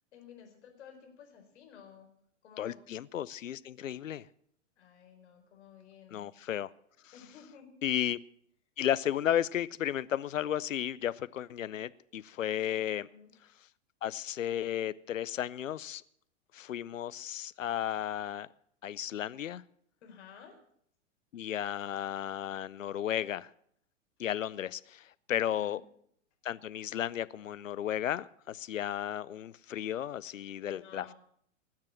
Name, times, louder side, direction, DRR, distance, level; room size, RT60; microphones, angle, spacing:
voice 1, 0.1-2.1 2.4-2.8 4.8-6.3 7.1-7.7 13.1-13.3 20.0-20.6 25.4-25.8 30.3-30.4 30.6-31.1, left 7 dB, 60° left, 3 dB, 4.5 m, -53 dB
voice 2, 2.6-4.2 6.1-6.7 7.8-8.2 8.8-13.1 14.0-16.0 16.5-18.5 18.8-19.6 21.3-23.5 24.2-25.8 26.4-31.1, left 11 dB, 80° left, 18 dB, 0.7 m, -34 dB
19.5 x 7.5 x 7.5 m, 0.68 s
hypercardioid pair, 105°, 38 cm